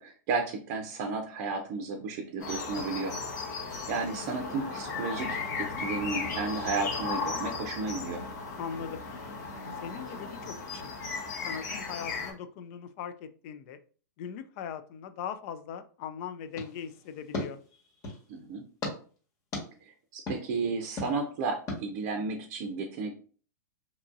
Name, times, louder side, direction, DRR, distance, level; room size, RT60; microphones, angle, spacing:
voice 1, 0.0-3.2 3.9-8.2 18.3-18.6 19.8-23.2, right 4 dB, 50° right, 4 dB, 0.5 m, -33 dB
sound 1, 2.4-12.3, left 4 dB, 70° left, 0.9 m, -36 dB
voice 2, 8.6-9.0 9.8-10.9 11.4-13.8 14.2-17.6, left 8 dB, 50° left, 10 dB, 0.4 m, -40 dB
sound 2, 16.5-18.3 18.8-18.9 19.5-19.6 20.3-20.4 21.0-21.1 21.7-21.8, left 2 dB, 35° left, 1.2 m, -36 dB
2.9 x 2.5 x 2.4 m, 0.40 s
hypercardioid pair, 115°, 10 cm